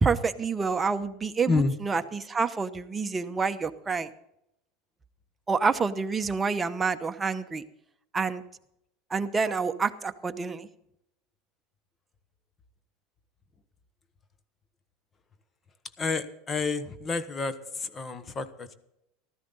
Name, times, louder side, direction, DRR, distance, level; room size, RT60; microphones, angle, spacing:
voice 1, 0.0-4.1 5.5-7.6 8.1-8.4 9.1-10.7, right 4 dB, 20° right, 8 dB, 0.9 m, -28 dB
voice 2, 16.0-18.7, left 4 dB, 30° left, 12 dB, 1.2 m, -29 dB
14.5 x 13.0 x 4.0 m, 0.80 s
hypercardioid pair, 100°, 0 cm